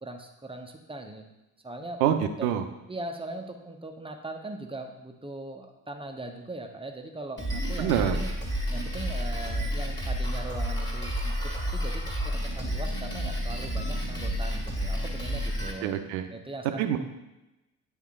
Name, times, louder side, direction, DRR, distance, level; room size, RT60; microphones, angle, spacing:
voice 1, 0.0-1.2 1.6-2.0 2.4-2.5 2.9-8.3 8.7-11.3 11.7-15.9 16.3-16.8, right 2 dB, 10° right, 4 dB, 0.8 m, -40 dB
voice 2, 2.0-2.7 7.8-8.2 15.8-16.3 16.8-17.0, right 9 dB, 65° right, 7 dB, 0.7 m, -26 dB
Drum kit, 7.4-15.7, equal, 10° left, 1.8 m, -30 dB
9.3 x 3.6 x 3.7 m, 0.99 s
figure-of-eight pair, 45°, 47 cm